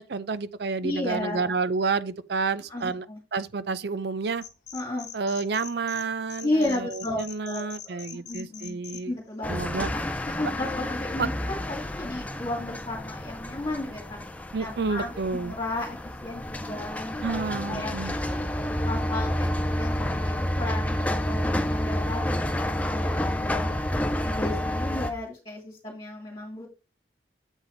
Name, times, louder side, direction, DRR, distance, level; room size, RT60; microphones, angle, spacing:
voice 1, 0.1-3.1 3.3-4.4 5.1-9.1 9.5-9.9 11.2-11.3 14.5-15.5 17.2-18.1, right 4 dB, 60° right, 0.5 m, -29 dB
voice 2, 0.8-1.6 2.7-3.2 4.7-5.1 6.4-9.6 9.9-14.2 14.6-18.5 18.8-23.7 24.2-26.7, left 2 dB, 25° left, 2.1 m, -34 dB
sound 1, 4.4-6.0 6.3-9.0, left 9 dB, 40° left, 1.2 m, -42 dB
sound 2, 9.4-25.1, left 1 dB, 10° left, 0.5 m, -29 dB
8.0 x 4.1 x 4.4 m
head